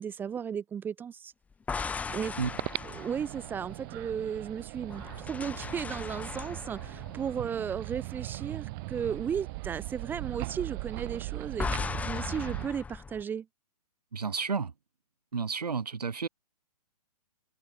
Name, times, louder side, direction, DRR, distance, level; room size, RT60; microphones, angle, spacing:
voice 1, 0.0-1.3 2.1-2.4 2.9-13.5, right 7 dB, 10° right, 0.6 m, -35 dB
sound 1, 1.5-4.4 4.9-8.3 8.6-8.9 11.6-13.2, left 5 dB, 5° left, 1.0 m, -38 dB
sound 2, 2.1-12.7, right 26 dB, 35° right, 1.8 m, -39 dB
voice 2, 14.1-14.7 15.3-16.3, right 5 dB, 85° right, 1.8 m, -31 dB
open air
hypercardioid pair, 135°, 20 cm